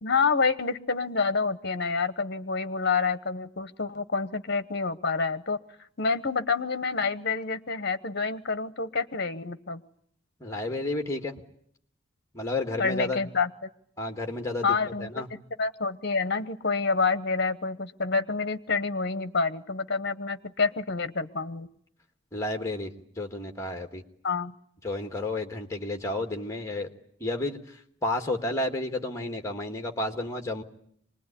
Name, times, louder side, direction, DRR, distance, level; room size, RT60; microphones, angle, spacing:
voice 1, 0.0-5.6 6.0-9.8 12.8-13.5 14.6-15.3 15.6-21.7 24.2-24.5, left 4 dB, 50° left, 13 dB, 1.0 m, -28 dB
voice 2, 10.4-11.4 12.3-13.2 14.0-15.3 22.3-22.9 23.2-24.0 24.8-26.9 27.2-30.6, left 2 dB, 15° left, 5 dB, 1.6 m, -31 dB
25.0 x 20.0 x 9.9 m, 0.69 s
head